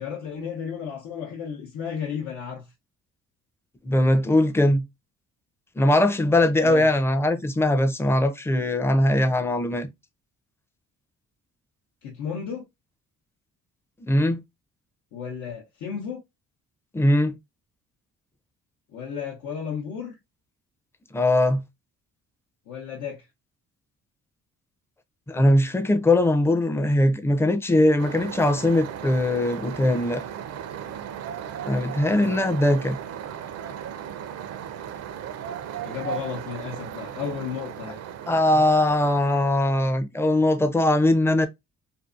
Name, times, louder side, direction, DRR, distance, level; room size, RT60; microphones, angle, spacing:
voice 1, 0.0-2.7 6.6-7.0 12.0-12.7 15.1-16.2 18.9-20.1 22.7-23.3 32.0-32.4 35.8-38.0, left 7 dB, 90° left, 0.8 m, -33 dB
voice 2, 3.8-4.9 5.8-9.9 14.0-14.4 16.9-17.4 21.1-21.6 25.3-30.2 31.6-33.0 38.3-41.5, left 1 dB, 10° left, 0.4 m, -21 dB
sound 1, 28.0-39.8, right 9 dB, 55° right, 0.5 m, -36 dB
2.6 x 2.4 x 2.4 m
cardioid pair, 90°, 30 cm